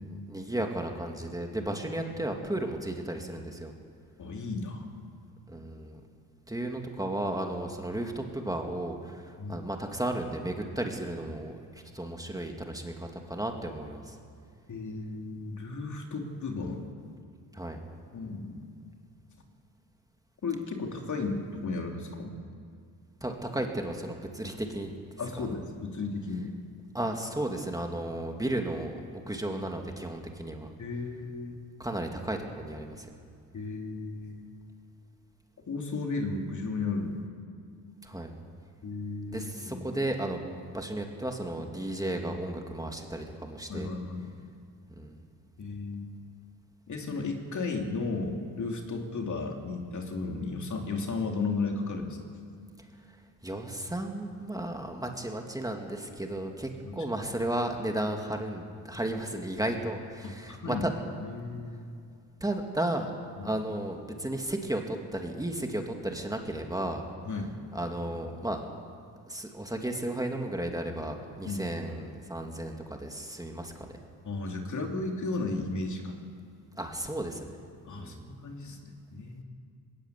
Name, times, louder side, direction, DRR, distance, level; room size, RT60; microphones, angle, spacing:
voice 1, 0.0-3.7 5.5-6.0 6.5-14.2 17.5-17.8 23.2-24.9 25.4-25.5 26.9-30.7 31.8-33.1 38.0-38.3 39.3-43.9 45.0-45.2 53.4-60.9 62.4-63.1 63.4-67.0 67.7-68.6 69.3-73.9 76.8-77.5 77.9-78.3, right 1 dB, 10° right, 3 dB, 2.4 m, -34 dB
voice 2, 4.2-4.9 9.4-9.6 14.7-16.9 18.1-18.7 20.4-22.3 25.2-26.6 30.8-31.6 33.5-34.5 35.7-37.2 38.8-40.0 43.7-44.3 45.6-46.1 46.9-52.2 56.8-57.0 60.2-60.9 61.2-61.8 63.4-63.5 67.2-67.6 71.5-71.8 74.2-76.2 77.9-79.4, left 3 dB, 50° left, 2 dB, 3.1 m, -34 dB
20.0 x 18.5 x 8.4 m, 2.3 s
cardioid pair, 95°, 38 cm